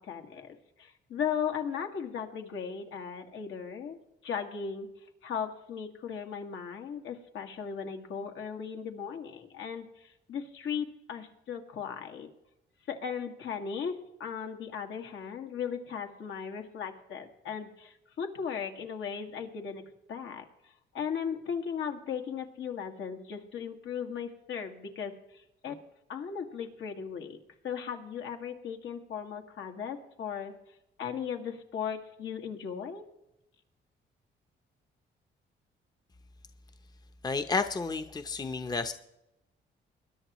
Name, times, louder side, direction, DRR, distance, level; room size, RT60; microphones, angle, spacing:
voice 1, 0.0-4.0 4.2-4.9 5.2-12.3 12.9-25.8 26.1-27.4 27.6-30.6 31.0-33.0, left 7 dB, 70° left, 4 dB, 2.1 m, -37 dB
voice 2, 37.2-38.9, left 4 dB, 20° left, 8 dB, 0.8 m, -31 dB
21.5 x 10.5 x 3.1 m, 0.85 s
cardioid pair, 90°, 20 cm